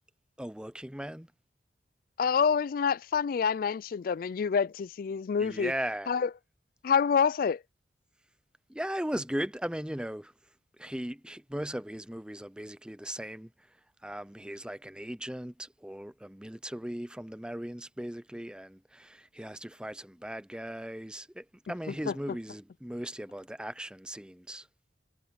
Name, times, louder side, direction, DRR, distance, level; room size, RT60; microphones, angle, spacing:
voice 1, 0.4-1.3 5.4-6.1 8.7-10.3 10.8-24.7, right 1 dB, 5° right, 0.6 m, -38 dB
voice 2, 2.2-5.7 6.1-6.3 6.8-7.6, left 6 dB, 50° left, 0.3 m, -27 dB
head